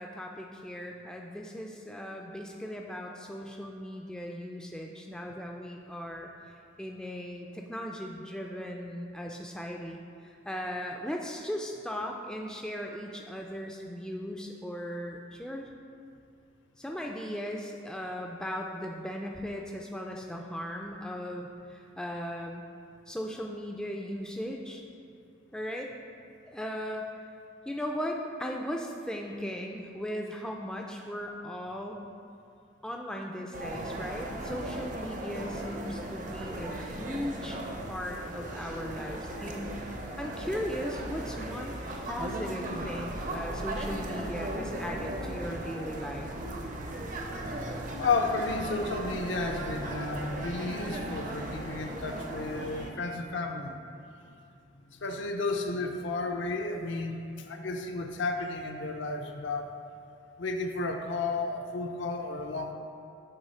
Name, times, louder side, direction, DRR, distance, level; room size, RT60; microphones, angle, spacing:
voice 1, 0.0-6.3 6.8-15.7 16.8-22.7 23.1-24.8 25.5-25.9 26.5-27.1 27.7-32.1 32.8-37.6 37.9-39.7 40.2-46.3, equal, 5° left, 0 dB, 0.3 m, -37 dB
sound 1, 33.5-52.9, right 1 dB, 40° right, 0.6 m, -37 dB
voice 2, 48.0-53.8 54.9-59.7 60.4-62.7, left 3 dB, 70° left, 4 dB, 0.6 m, -32 dB
8.0 x 3.1 x 5.5 m, 2.5 s
head